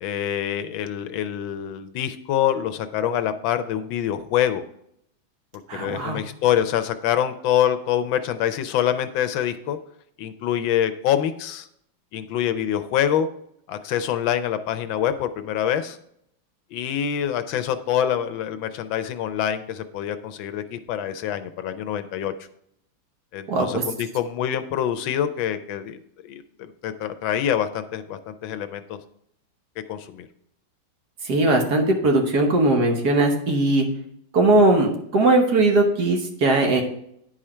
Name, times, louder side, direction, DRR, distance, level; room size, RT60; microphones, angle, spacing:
voice 1, 0.0-4.6 5.8-9.8 10.2-11.7 12.1-13.3 13.7-16.0 16.7-22.3 23.3-29.0 29.9-30.3, left 10 dB, 80° left, 10 dB, 1.4 m, -25 dB
voice 2, 5.7-6.2 23.5-23.8 31.2-33.9 34.3-36.8, right 2 dB, 55° right, 3 dB, 1.6 m, -19 dB
9.9 x 5.0 x 4.3 m, 0.72 s
omnidirectional pair, 2.2 m